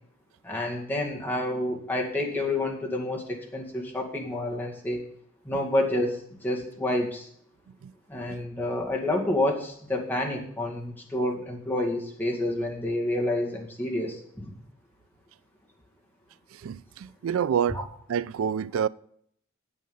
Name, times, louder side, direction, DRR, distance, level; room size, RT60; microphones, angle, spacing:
voice 1, 0.4-5.0 5.4-7.3 8.1-14.5 17.7-17.8, left 1 dB, 10° left, 2.0 m, -29 dB
voice 2, 16.5-17.8 18.1-18.9, right 8 dB, 75° right, 0.3 m, -28 dB
10.5 x 8.2 x 5.4 m
head